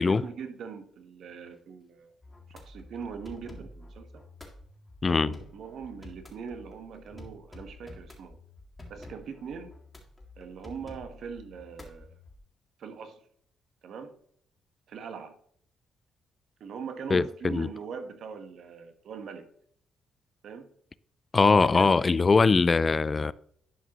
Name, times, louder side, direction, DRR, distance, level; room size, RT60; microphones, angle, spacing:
voice 1, 0.0-2.1 2.5-4.2 5.1-8.4 8.9-9.8 10.4-12.2 12.8-13.2 13.8-14.2 14.9-15.4 16.6-19.5 20.4-20.7 21.7-22.0, right 6 dB, 70° right, 1.1 m, -41 dB
sound 1, 2.2-12.4, left 2 dB, 15° left, 2.0 m, -49 dB
voice 2, 5.0-5.3 17.1-17.7 21.3-23.3, left 4 dB, 30° left, 0.3 m, -22 dB
11.0 x 5.1 x 2.9 m
cardioid pair, 90°, 0 cm